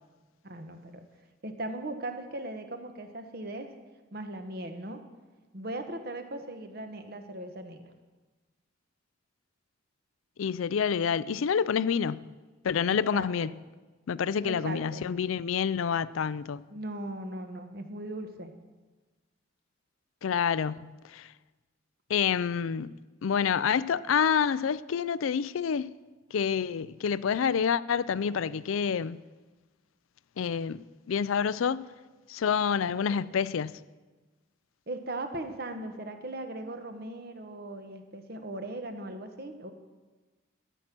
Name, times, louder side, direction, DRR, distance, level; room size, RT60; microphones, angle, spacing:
voice 1, 0.4-1.0 1.4-3.7 4.1-5.0 5.5-7.9 12.9-13.5 14.4-15.0 16.7-18.5 33.1-33.4 34.9-39.7, right 1 dB, 50° right, 1.1 m, -38 dB
voice 2, 10.4-12.3 12.6-13.5 14.1-16.6 20.2-21.3 22.1-23.0 23.2-25.9 26.3-29.2 30.4-31.9 32.3-33.8, left 7 dB, 85° left, 0.4 m, -28 dB
13.5 x 9.2 x 6.0 m
head